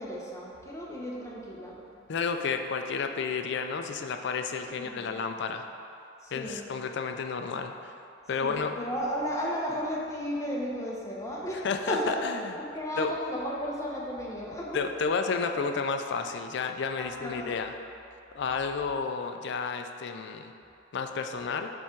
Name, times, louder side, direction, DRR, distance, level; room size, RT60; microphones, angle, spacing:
voice 1, 0.0-1.8 4.6-5.2 6.2-6.6 8.4-12.2 12.6-14.8 15.5-15.6 17.0-17.6, equal, 15° left, -4 dB, 0.8 m, -34 dB
voice 2, 2.1-5.7 6.3-7.9 8.3-8.7 11.6-12.6 13.0-13.2 14.7-17.7 18.3-20.5 20.9-21.7, left 5 dB, 60° left, 6 dB, 0.4 m, -31 dB
7.2 x 3.5 x 4.4 m, 2.6 s
head